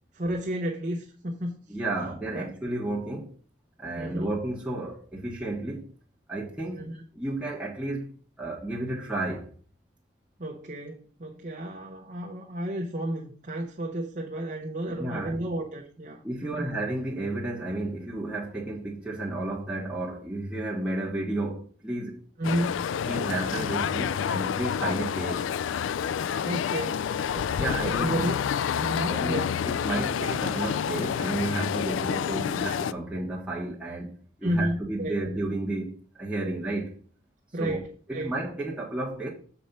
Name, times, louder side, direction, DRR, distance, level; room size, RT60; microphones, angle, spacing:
voice 1, 0.1-1.6 2.3-2.5 4.0-4.3 6.8-7.0 10.4-16.7 22.4-22.9 26.4-27.1 27.3-28.4 28.8-29.5 34.4-35.2 37.5-38.4, right 1 dB, 40° right, 0.8 m, -32 dB
voice 2, 1.7-3.3 3.8-5.9 6.3-6.8 7.1-8.1 8.4-9.5 14.9-15.4 16.2-22.2 23.1-25.5 27.6-28.2 29.1-36.9 37.6-37.8 38.1-39.3, right 2 dB, 5° right, 1.4 m, -32 dB
sound 1, 22.4-32.9, left 8 dB, 85° left, 0.3 m, -28 dB
6.9 x 4.3 x 5.3 m
head